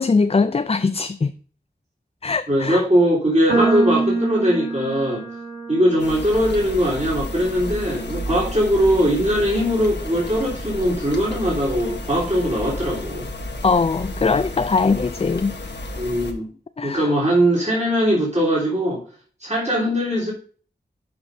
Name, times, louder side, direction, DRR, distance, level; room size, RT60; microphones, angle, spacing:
voice 1, 0.0-1.3 2.2-2.8 13.6-15.5 16.8-17.1, left 4 dB, 30° left, 0.4 m, -21 dB
voice 2, 2.5-5.2 5.7-13.3 16.0-16.5 16.8-19.0 19.4-20.3, equal, 35° right, 3.4 m, -20 dB
sound 1, 3.5-9.8, right 3 dB, 85° right, 2.1 m, -28 dB
sound 2, 6.0-16.3, left 1 dB, 70° left, 1.1 m, -32 dB
12.5 x 5.2 x 2.6 m
wide cardioid pair, 45°, 19 cm